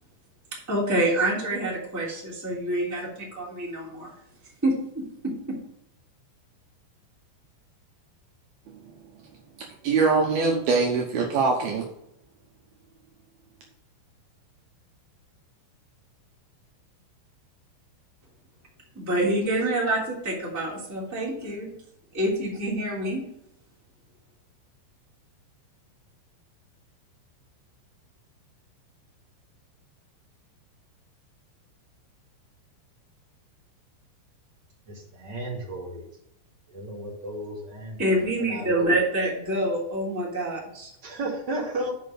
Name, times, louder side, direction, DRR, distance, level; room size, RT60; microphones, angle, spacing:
voice 1, 0.5-4.1 4.6-5.6 18.9-21.7 22.1-23.2 38.0-40.9, right 1 dB, 5° right, -5 dB, 1.9 m, -27 dB
voice 2, 9.8-11.8, right 4 dB, 90° right, 0 dB, 2.1 m, -22 dB
voice 3, 34.9-36.1 36.7-38.9 41.0-41.9, right 1 dB, 30° right, -4 dB, 2.2 m, -34 dB
7.4 x 5.7 x 6.6 m, 0.76 s
omnidirectional pair, 5.8 m